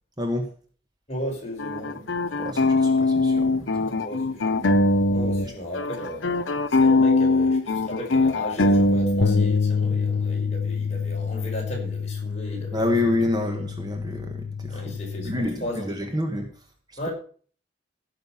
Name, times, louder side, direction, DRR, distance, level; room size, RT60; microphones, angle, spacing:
voice 1, 0.2-0.5 2.4-3.9 12.7-15.0 15.2-17.0, left 2 dB, 20° right, 1.5 m, -28 dB
voice 2, 1.1-2.1 2.4-2.9 3.9-4.8 5.1-6.3 6.8-12.8 13.0-13.1 14.7-16.1 17.0-17.1, equal, 35° left, 5.1 m, -35 dB
sound 1, 1.6-5.5 5.7-9.6, left 2 dB, 85° left, 0.9 m, -21 dB
sound 2, 9.2-15.5, left 6 dB, 65° left, 0.6 m, -27 dB
15.5 x 6.7 x 5.7 m
head